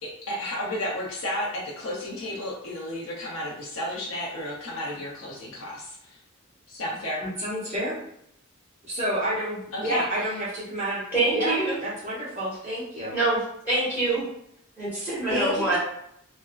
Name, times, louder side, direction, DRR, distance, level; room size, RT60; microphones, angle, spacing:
voice 1, 0.0-6.2 6.7-7.2 9.7-10.0, left 1 dB, 75° left, -4 dB, 0.7 m, -32 dB
voice 2, 7.2-8.0 8.9-11.0 11.3-11.6 11.8-13.1 15.3-15.8, equal, 35° right, -9 dB, 0.9 m, -29 dB
voice 3, 11.1-11.8 13.1-13.4 13.6-14.2 14.8-15.8, right 2 dB, 10° right, -10 dB, 1.5 m, -24 dB
3.4 x 2.0 x 2.3 m, 0.74 s
head